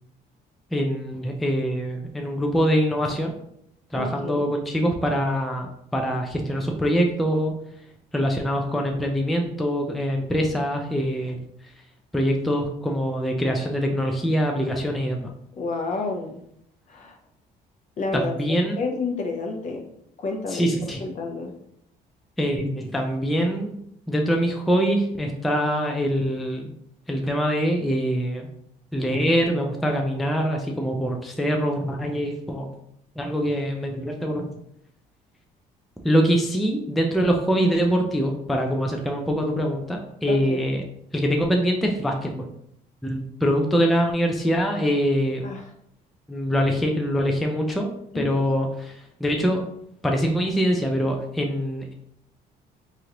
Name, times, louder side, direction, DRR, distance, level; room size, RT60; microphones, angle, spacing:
voice 1, 0.7-3.3 3.9-7.5 8.1-11.4 12.1-15.3 18.1-18.8 20.5-21.0 22.4-23.8 24.1-26.7 27.1-28.5 28.9-32.7 33.2-34.5 36.0-40.8 41.1-42.5 43.0-45.5 46.3-47.9 48.1-49.7 50.0-51.9, equal, ahead, 2 dB, 0.3 m, -24 dB
voice 2, 3.9-4.5 15.6-16.4 16.9-17.2 18.0-18.3 18.8-19.8 20.2-20.7 21.0-21.5 40.3-40.6 45.4-45.7 48.1-48.4, left 3 dB, 45° left, 2 dB, 0.7 m, -30 dB
3.0 x 2.5 x 2.8 m, 0.74 s
cardioid pair, 110°, 17 cm